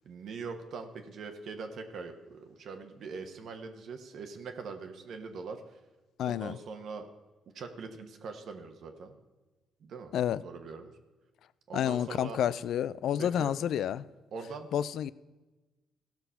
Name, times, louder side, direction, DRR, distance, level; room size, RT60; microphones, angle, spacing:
voice 1, 0.0-5.8 6.2-7.1 7.5-9.1 9.8-10.1 10.4-11.0 11.7-12.4 13.2-13.6 14.3-14.7, right 4 dB, 65° right, 1.1 m, -42 dB
voice 2, 6.2-6.6 10.1-10.4 11.7-14.0 14.7-15.1, left 10 dB, 75° left, 0.3 m, -29 dB
15.0 x 5.9 x 5.6 m
cardioid pair, 90°, 0 cm